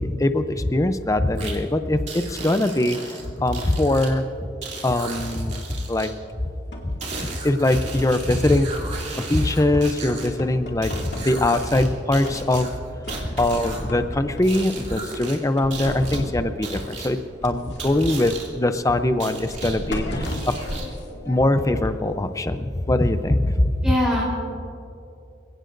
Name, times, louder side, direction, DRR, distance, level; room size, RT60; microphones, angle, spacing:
voice 1, 0.0-4.2 4.8-6.1 6.8-6.9 7.4-8.7 9.2-12.7 13.2-17.2 17.4-20.5 21.3-23.7, left 1 dB, 20° left, 9 dB, 0.6 m, -22 dB
sound 1, 1.4-1.6 2.1-4.1 4.6-6.1 7.0-10.3 10.8-11.9 12.1-13.9 14.4-15.4 15.7-16.2 16.6-17.1 17.8-18.5 19.2-19.8 20.2-21.0, right 4 dB, 40° right, 2.9 m, -36 dB
voice 2, 4.6-4.9 23.8-24.3, left 1 dB, 5° right, -8 dB, 3.8 m, -24 dB
sound 2, 6.2-7.5 8.0-9.3 9.7-11.9 12.2-12.8 13.0-15.0 15.6-16.6 17.4-21.9, equal, 75° left, 2.2 m, -35 dB
27.5 x 17.0 x 2.6 m, 2.7 s
head